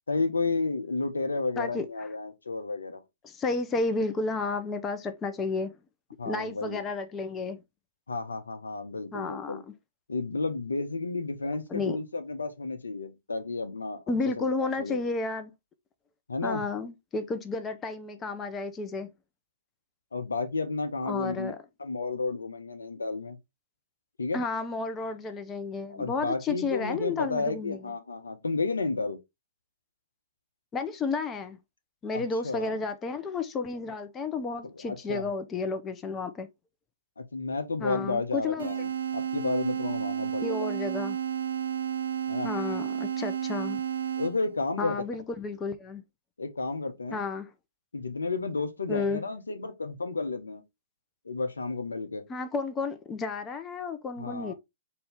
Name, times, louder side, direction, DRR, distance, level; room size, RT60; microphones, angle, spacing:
voice 1, 0.1-3.0 6.2-6.8 8.1-9.6 10.1-14.0 14.4-15.0 16.3-16.7 20.1-21.5 21.8-23.4 24.2-24.4 25.9-29.2 32.1-32.8 34.6-35.3 37.2-40.7 42.3-42.5 44.2-45.0 46.4-47.2 47.9-50.6 51.2-52.2 54.2-54.5, left 3 dB, 80° left, 0.7 m, -32 dB
voice 2, 3.2-5.7 6.3-7.6 9.1-9.6 11.7-12.0 14.1-15.5 16.4-19.1 21.1-21.6 24.3-27.8 30.7-31.6 32.0-36.5 37.8-38.7 40.4-41.2 42.4-43.8 44.8-46.0 47.1-47.5 48.9-49.2 52.3-54.5, left 3 dB, 20° left, 0.6 m, -32 dB
sound 1, 38.6-44.6, right 9 dB, 70° right, 1.0 m, -32 dB
4.1 x 2.7 x 3.4 m
figure-of-eight pair, 115°, 0 cm